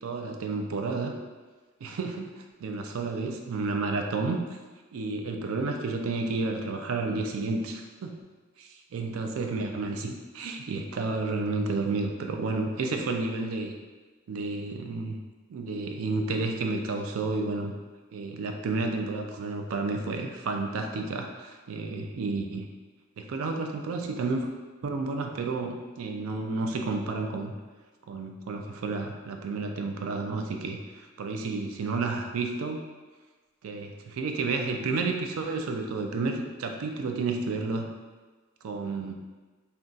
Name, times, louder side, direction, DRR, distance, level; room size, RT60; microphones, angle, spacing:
voice 1, 0.0-1.1 1.8-4.5 4.9-8.1 8.6-13.7 14.3-15.2 15.5-17.7 18.1-22.6 23.2-24.5 24.8-27.5 28.1-32.8 33.6-37.9 38.6-39.1, right 3 dB, 80° right, 4 dB, 0.4 m, -31 dB
2.4 x 2.2 x 3.8 m, 1.3 s
head